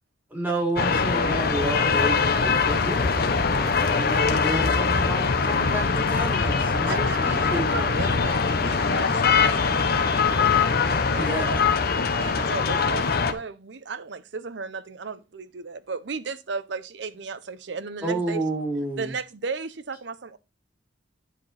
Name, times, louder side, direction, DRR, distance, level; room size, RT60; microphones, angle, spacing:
voice 1, 0.3-8.0 11.2-11.6 18.0-19.1, right 1 dB, 10° right, 2.8 m, -30 dB
sound 1, 0.8-13.3, left 5 dB, 55° left, 0.9 m, -22 dB
voice 2, 6.9-9.5 11.1-11.6 12.1-18.4 19.0-20.4, right 4 dB, 65° right, 0.6 m, -35 dB
voice 3, 8.7-10.6 10.9-11.4, left 4 dB, 70° left, 2.0 m, -35 dB
9.9 x 4.8 x 4.2 m
head